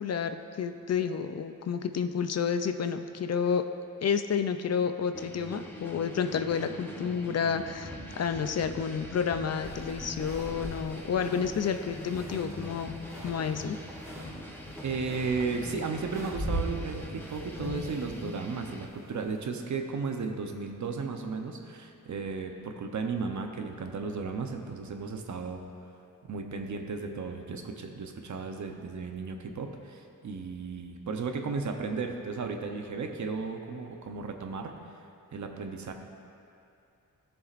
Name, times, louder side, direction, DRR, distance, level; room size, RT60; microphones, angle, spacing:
voice 1, 0.0-3.6 4.0-13.0 13.2-13.8, left 7 dB, 50° left, 8 dB, 0.4 m, -30 dB
sound 1, 5.1-18.8, left 1 dB, 5° left, 0.9 m, -42 dB
sound 2, 9.6-19.4, right 1 dB, 10° right, 2.0 m, -41 dB
voice 2, 14.8-25.6 26.2-34.7 35.3-35.9, right 4 dB, 65° right, 4 dB, 0.8 m, -34 dB
16.5 x 7.1 x 2.5 m, 2.6 s
wide cardioid pair, 155°, 32 cm